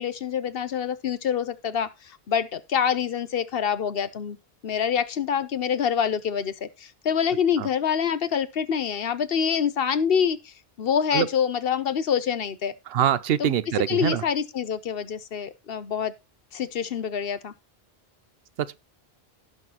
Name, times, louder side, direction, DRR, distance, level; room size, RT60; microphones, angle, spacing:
voice 1, 0.0-1.9 2.3-4.4 4.6-10.5 10.8-12.7 13.4-13.5 13.9-16.1 16.5-17.5, left 7 dB, 70° left, 1.0 m, -26 dB
voice 2, 12.9-14.2 18.6-18.8, right 10 dB, 70° right, 0.9 m, -24 dB
17.0 x 5.9 x 2.9 m
omnidirectional pair, 1.0 m